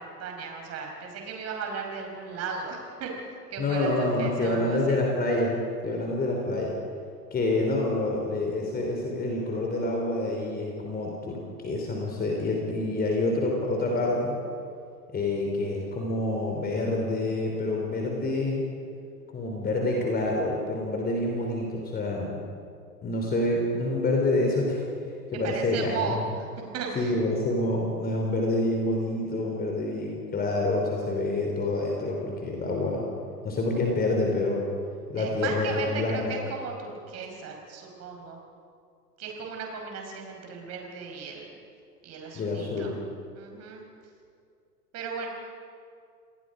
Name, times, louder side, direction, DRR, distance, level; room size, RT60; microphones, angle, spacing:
voice 1, 0.0-3.1 3.5-5.0 25.4-26.2 26.7-27.2 35.2-38.4 39.2-41.5 42.0-42.9 43.3-43.8 44.9-45.3, right 5 dB, 30° right, 2 dB, 5.5 m, -36 dB
voice 2, 3.6-5.6 5.8-6.8 7.3-14.4 15.1-18.6 19.3-22.3 23.0-24.8 25.3-26.2 27.0-33.1 33.4-34.7 35.1-36.3 42.3-42.9, left 2 dB, 20° left, 0 dB, 3.5 m, -27 dB
28.5 x 20.0 x 5.1 m, 2.4 s
figure-of-eight pair, 105°, 47 cm